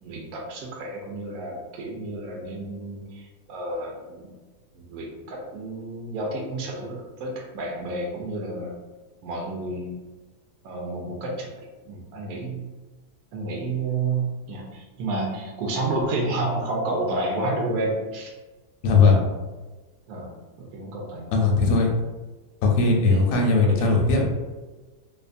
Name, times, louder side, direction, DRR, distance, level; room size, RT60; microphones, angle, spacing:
voice 1, 0.0-4.3 4.7-8.7 9.2-9.9 10.6-11.5 11.8-12.6 13.3-18.3 19.1-19.3 20.1-20.3 20.6-21.6 23.1-23.5 23.8-23.9, right 2 dB, 70° right, -1 dB, 1.0 m, -30 dB
voice 2, 18.8-19.2 21.3-21.9 22.6-24.3, left 4 dB, 70° left, 0 dB, 0.8 m, -19 dB
2.8 x 2.2 x 2.5 m, 1.2 s
omnidirectional pair, 1.7 m